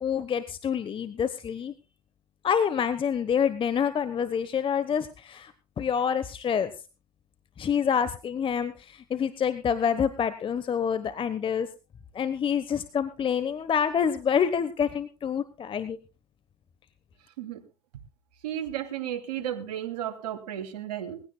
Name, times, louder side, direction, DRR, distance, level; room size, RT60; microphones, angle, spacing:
voice 1, 0.0-1.7 2.4-5.5 5.8-6.7 7.6-11.7 12.1-16.0, left 7 dB, 25° left, 12 dB, 1.1 m, -27 dB
voice 2, 18.4-21.2, right 11 dB, 80° right, 5 dB, 2.8 m, -33 dB
21.0 x 16.0 x 2.3 m, 0.31 s
hypercardioid pair, 105°, 21 cm